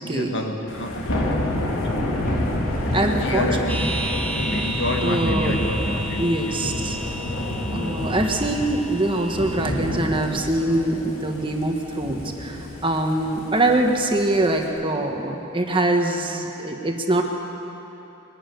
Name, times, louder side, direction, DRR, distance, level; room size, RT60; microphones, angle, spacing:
voice 1, 0.0-1.9 2.8-6.6 7.7-8.2, left 1 dB, 60° left, 3 dB, 1.8 m, -30 dB
Thunder / Rain, 0.7-14.7, left 1 dB, 80° left, 3.6 m, -28 dB
voice 2, 2.9-3.5 5.0-5.6 6.2-7.0 7.7-17.2, right 2 dB, 25° right, 3 dB, 1.5 m, -23 dB
sound 1, 3.7-9.6, right 1 dB, 10° left, 2.3 m, -33 dB
22.5 x 12.5 x 9.3 m, 3.0 s
head